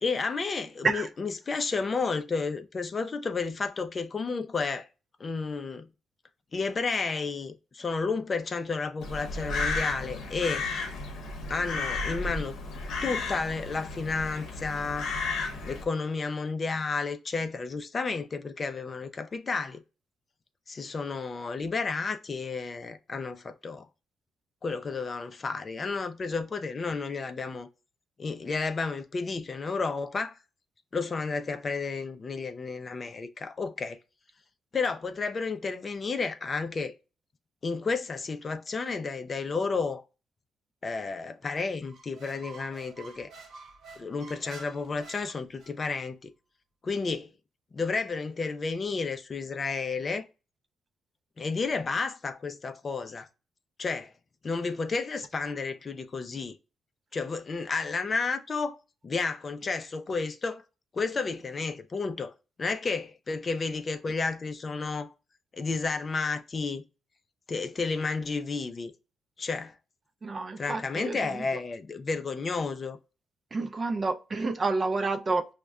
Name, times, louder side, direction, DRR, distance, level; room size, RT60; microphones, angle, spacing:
voice 1, 0.0-4.9 5.2-5.9 6.5-10.7 11.5-12.5 13.0-15.1 15.6-19.8 20.7-23.9 24.6-27.7 28.2-30.4 30.9-34.0 34.7-36.9 37.6-40.0 40.8-43.3 44.0-46.3 46.8-47.3 47.7-50.3 51.4-53.3 53.8-54.1 54.4-56.6 57.1-58.8 59.0-60.6 60.9-62.3 62.6-65.1 65.5-66.8 67.5-68.9 69.4-69.8 70.6-73.0, left 4 dB, 40° left, 0.4 m, -31 dB
Crow, 9.0-15.8, left 3 dB, 75° left, 0.7 m, -33 dB
Squeak, 41.9-45.9, right 3 dB, 70° right, 0.8 m, -49 dB
voice 2, 70.2-71.2 73.5-75.5, right 3 dB, 40° right, 0.4 m, -29 dB
5.0 x 2.2 x 2.3 m
supercardioid pair, 65°, 0 cm